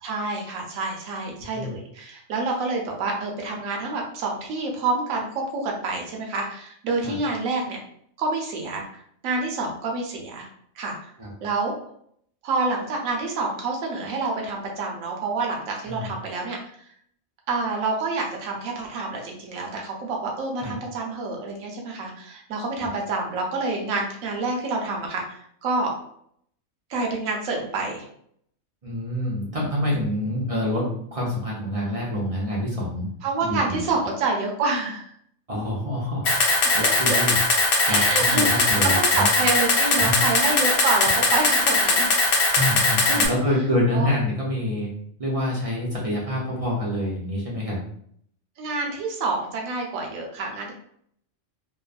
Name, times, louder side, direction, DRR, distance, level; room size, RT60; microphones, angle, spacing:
voice 1, 0.0-7.8 8.2-8.9 9.2-10.5 10.8-11.1 11.4-11.7 12.4-16.6 17.5-25.9 26.9-28.0 33.2-35.1 36.8-37.2 37.8-42.1 43.1-43.3 43.9-44.1 48.6-50.7, right 3 dB, 75° right, 0 dB, 1.1 m, -27 dB
voice 2, 28.8-33.1 33.4-33.8 35.5-37.3 37.8-38.0 38.3-39.3 40.0-40.1 42.5-44.9 45.2-47.8, left 1 dB, 45° right, -5 dB, 0.4 m, -26 dB
Camera, 36.3-43.3, left 2 dB, 60° left, 0.6 m, -20 dB
3.0 x 2.0 x 2.4 m, 0.66 s
omnidirectional pair, 1.4 m